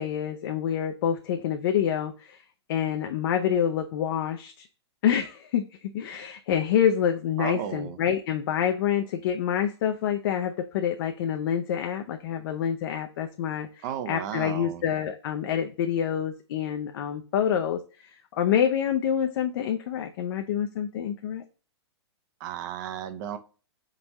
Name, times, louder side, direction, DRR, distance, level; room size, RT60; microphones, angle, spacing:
voice 1, 0.0-2.4 2.7-4.7 5.0-17.8 18.3-21.4, left 9 dB, 55° left, 5 dB, 0.5 m, -27 dB
voice 2, 7.4-8.0 13.8-14.8 22.4-23.4, right 10 dB, 40° right, 11 dB, 0.6 m, -34 dB
4.1 x 3.7 x 2.9 m, 0.36 s
hypercardioid pair, 140°, 15 cm